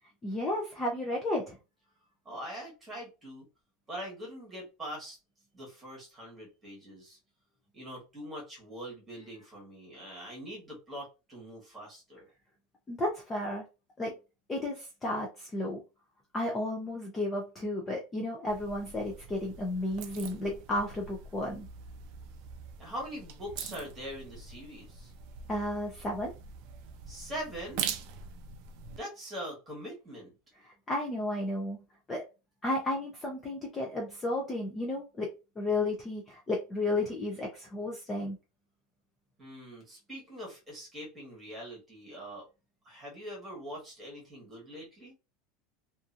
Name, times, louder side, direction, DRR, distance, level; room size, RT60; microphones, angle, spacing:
voice 1, 0.2-1.5 12.9-13.6 14.0-14.1 14.5-15.8 16.3-21.7 25.5-26.3 30.6-31.8 32.1-32.2 32.6-35.3 35.6-38.4, left 1 dB, 15° left, -1 dB, 0.5 m, -33 dB
voice 2, 2.2-3.5 3.9-5.2 5.5-7.2 7.7-12.3 22.8-25.1 27.1-27.8 29.0-30.3 39.4-42.5 42.8-45.1, equal, 10° right, -3 dB, 1.3 m, -43 dB
sound 1, 18.5-29.0, right 7 dB, 50° right, 0.4 m, -43 dB
2.8 x 2.4 x 2.5 m, 0.29 s
supercardioid pair, 175°, 0 cm